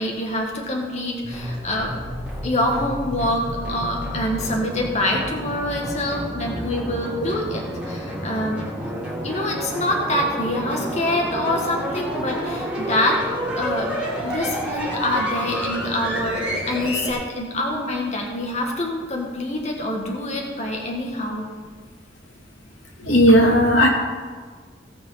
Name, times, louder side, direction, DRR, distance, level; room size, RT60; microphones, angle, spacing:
voice 1, 0.0-1.9 2.4-8.6 9.2-13.2 13.6-13.9 14.2-21.5, left 1 dB, 35° left, 0 dB, 1.6 m, -25 dB
sound 1, 1.2-17.1, equal, 5° right, 3.4 m, -30 dB
voice 2, 23.0-23.9, equal, 85° left, -1 dB, 2.6 m, -14 dB
17.0 x 6.2 x 5.7 m, 1.5 s
head